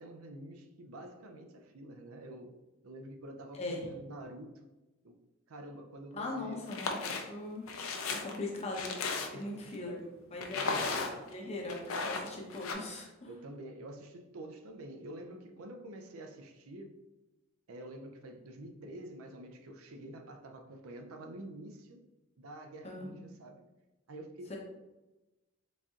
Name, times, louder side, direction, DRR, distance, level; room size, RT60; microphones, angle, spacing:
voice 1, 0.0-2.6 2.8-4.7 5.0-5.1 5.5-6.6 9.3-9.6 10.5-11.3 13.3-17.0 17.7-22.0 22.4-23.7 24.1-24.6, right 1 dB, 80° right, 5 dB, 0.5 m, -48 dB
voice 2, 3.5-3.9 6.1-7.7 8.2-13.3 22.8-23.2 24.5-24.6, left 2 dB, 30° left, -1 dB, 0.7 m, -40 dB
sound 1, 6.6-7.2 7.7-9.5 10.4-11.3 11.7-12.7, left 4 dB, 75° left, 0.5 m, -35 dB
4.1 x 3.7 x 2.4 m, 1.1 s
head